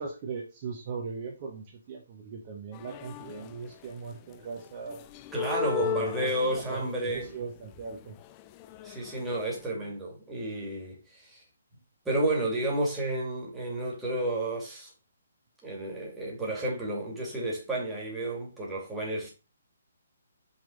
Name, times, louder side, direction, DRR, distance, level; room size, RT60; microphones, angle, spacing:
voice 1, 0.0-5.0 5.7-8.1, right 5 dB, 35° right, 1.4 m, -39 dB
sound 1, 2.7-3.9 4.3-9.7, left 9 dB, 25° left, 0.4 m, -37 dB
voice 2, 5.3-7.3 8.8-11.4 12.0-14.9 15.6-19.3, right 1 dB, 5° right, 2.4 m, -31 dB
5.5 x 4.7 x 4.1 m
figure-of-eight pair, 135°, 0 cm